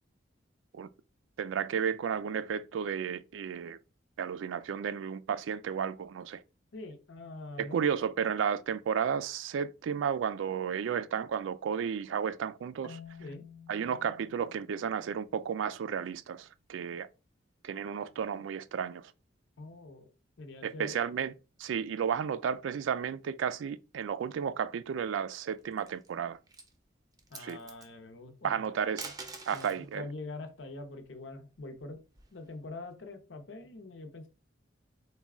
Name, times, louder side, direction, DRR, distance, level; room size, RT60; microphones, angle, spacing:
voice 1, 1.4-3.8 4.2-6.4 7.6-13.0 13.7-17.1 17.6-19.1 20.6-21.3 21.6-26.4 27.4-27.6 28.4-29.1 29.5-30.1, right 7 dB, 90° right, 0.3 m, -33 dB
voice 2, 6.7-7.9 13.2-13.4 19.6-20.1 20.4-21.0 27.3-28.6 29.5-32.0 32.3-34.3, left 2 dB, 80° left, 0.7 m, -44 dB
Marimba xylophone, 12.8-15.8, left 7 dB, 65° left, 0.4 m, -52 dB
sound 1, 25.6-26.1 26.5-26.7 27.1-27.9 28.8-29.8 31.3-32.5, right 4 dB, 20° right, 0.5 m, -45 dB
4.0 x 2.2 x 3.5 m
head